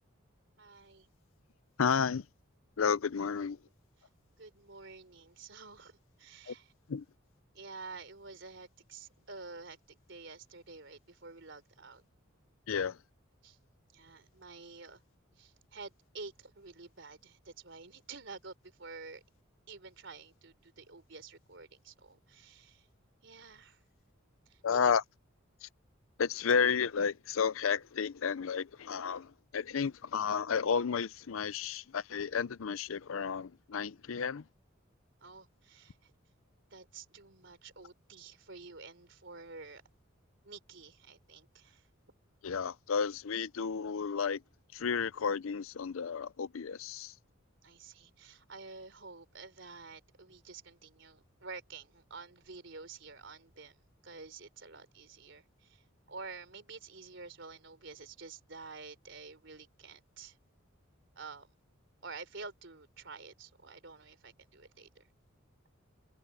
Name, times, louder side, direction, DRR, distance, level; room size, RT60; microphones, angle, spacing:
voice 1, 0.6-1.1 4.0-4.1 4.4-6.7 7.5-12.0 13.4-13.6 13.9-15.0 15.4-19.2 19.7-22.9 23.2-23.8 24.5-24.9 35.2-36.1 36.7-39.8 40.4-41.9 47.6-60.4 61.2-61.5 62.0-65.0, right 4 dB, 60° right, 3.9 m, -49 dB
voice 2, 1.8-2.3 2.8-3.6 6.5-6.6 6.9-7.0 12.7-13.0 24.6-25.0 25.6-25.7 26.2-34.4 42.4-44.4 44.7-47.1, left 6 dB, 80° left, 0.5 m, -32 dB
head